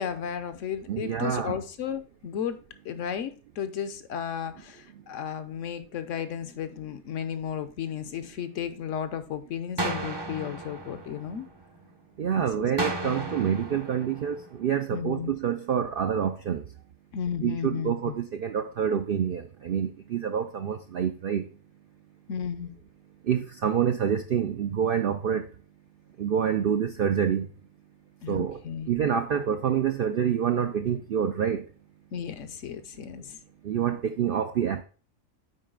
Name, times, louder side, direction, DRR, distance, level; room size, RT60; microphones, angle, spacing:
voice 1, 0.0-2.6 2.8-11.5 12.3-12.7 13.0-13.2 14.9-15.3 17.1-18.1 22.3-22.7 28.2-28.9 32.1-33.4, left 8 dB, 65° left, 1.0 m, -34 dB
voice 2, 0.9-1.6 12.2-16.6 17.4-21.5 23.2-25.5 26.2-27.5 28.3-28.6 28.9-31.7 33.6-34.8, right 8 dB, 70° right, 0.5 m, -27 dB
sound 1, 9.8-11.8 12.8-14.8, right 1 dB, 25° right, 0.6 m, -34 dB
7.8 x 4.9 x 3.7 m
omnidirectional pair, 1.4 m